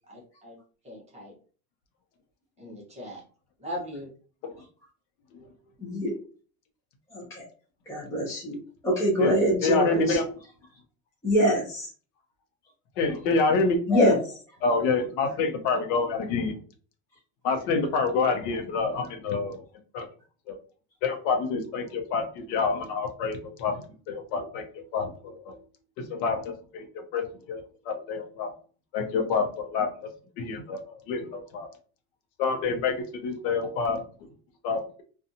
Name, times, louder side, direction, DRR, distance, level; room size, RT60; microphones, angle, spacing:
voice 1, 0.1-0.6 0.8-1.3 2.6-3.2 3.6-4.1, equal, 15° right, -2 dB, 0.7 m, -39 dB
voice 2, 5.8-6.1 7.1-7.4 7.9-8.6 8.8-10.2 11.2-11.9 13.9-14.2, equal, 5° left, -5 dB, 0.4 m, -24 dB
voice 3, 9.2-10.3 13.0-13.8 14.6-16.6 17.4-19.6 19.9-20.1 20.5-20.6 21.0-25.6 26.0-28.5 28.9-30.1 30.4-31.7 32.4-34.0 34.6-35.0, left 4 dB, 60° left, 5 dB, 0.7 m, -27 dB
2.6 x 2.3 x 2.6 m, 0.39 s
cardioid pair, 150°, 43 cm